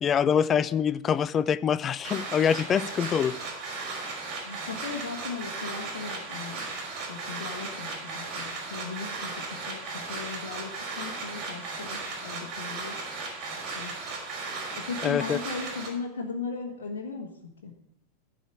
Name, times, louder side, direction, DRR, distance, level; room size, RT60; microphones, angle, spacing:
voice 1, 0.0-3.4 15.0-15.4, left 8 dB, 25° left, 18 dB, 0.4 m, -25 dB
sound 1, 2.0-15.9, right 3 dB, 40° right, 3.4 m, -36 dB
voice 2, 4.4-6.7 7.1-13.0 13.7-14.0 14.7-17.3 17.6-17.7, left 5 dB, 60° left, 0 dB, 1.3 m, -37 dB
11.5 x 5.0 x 8.5 m, 0.79 s
figure-of-eight pair, 90°, 0 cm